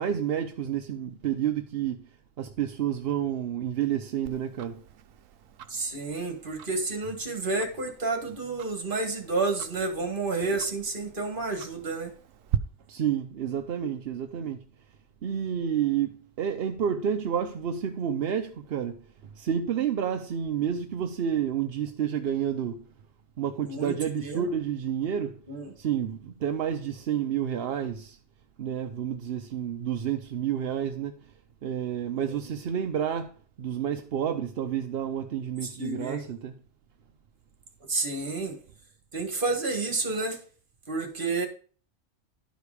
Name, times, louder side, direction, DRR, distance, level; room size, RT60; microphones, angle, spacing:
voice 1, 0.0-2.1 2.4-4.8 12.9-14.6 15.2-19.0 19.4-22.8 23.4-25.4 25.8-28.2 28.6-31.1 31.6-36.5, right 9 dB, 60° right, 0.8 m, -30 dB
Tick-tock, 4.3-12.6, right 10 dB, 75° right, 1.0 m, -40 dB
voice 2, 5.7-12.1 23.6-23.9 24.2-24.5 25.5-25.7 32.1-32.4 35.6-36.3 37.9-38.6 39.1-40.4 40.9-41.5, right 3 dB, 40° right, 1.8 m, -30 dB
11.5 x 5.1 x 4.9 m
omnidirectional pair, 1.4 m